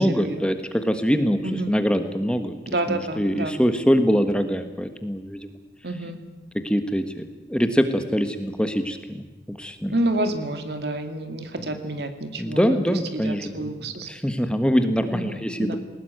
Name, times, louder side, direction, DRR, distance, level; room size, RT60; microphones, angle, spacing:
voice 1, 0.0-2.6 2.9-5.5 6.5-9.9 12.4-15.8, equal, 5° left, 8 dB, 1.3 m, -24 dB
voice 2, 2.7-3.5 5.8-6.2 9.9-14.1 15.1-15.8, right 1 dB, 70° right, 7 dB, 2.4 m, -29 dB
20.5 x 19.0 x 9.2 m, 1.2 s
head